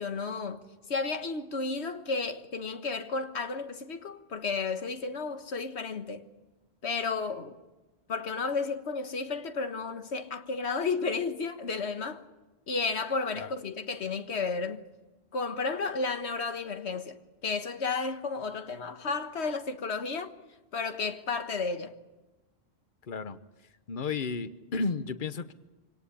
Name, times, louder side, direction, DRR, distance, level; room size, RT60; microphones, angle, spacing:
voice 1, 0.0-6.2 6.8-7.6 8.1-12.2 12.7-14.8 15.3-20.3 20.7-21.9, left 4 dB, 80° left, 1.6 m, -32 dB
voice 2, 23.1-23.4 23.9-25.5, left 4 dB, 50° left, 1.1 m, -33 dB
26.0 x 18.0 x 8.5 m
omnidirectional pair, 1.1 m